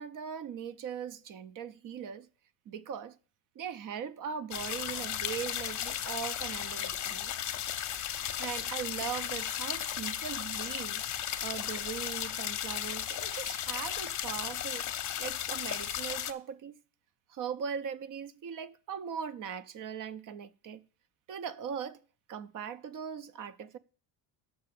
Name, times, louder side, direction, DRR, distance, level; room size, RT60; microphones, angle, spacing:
voice 1, 0.0-2.3 2.7-3.2 3.6-7.3 8.4-16.8 17.3-20.9 21.3-22.0 22.3-23.8, right 7 dB, 50° right, 0.6 m, -40 dB
sound 1, 4.5-16.3, left 10 dB, 45° left, 0.7 m, -35 dB
6.7 x 5.7 x 6.7 m
cardioid pair, 155°, 42 cm